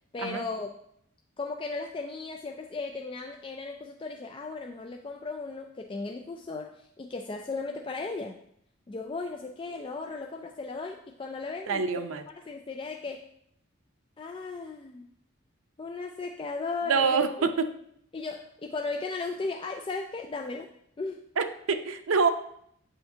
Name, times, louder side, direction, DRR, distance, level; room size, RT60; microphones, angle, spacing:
voice 1, 0.1-0.7 1.4-8.4 8.9-11.8 12.3-13.2 14.2-15.1 15.8-17.2 18.1-20.7 21.0-21.2, left 3 dB, 25° left, 3 dB, 0.3 m, -36 dB
voice 2, 11.7-12.2 16.9-17.7 21.4-22.3, right 5 dB, 85° right, 8 dB, 0.6 m, -26 dB
8.5 x 5.6 x 2.7 m, 0.71 s
head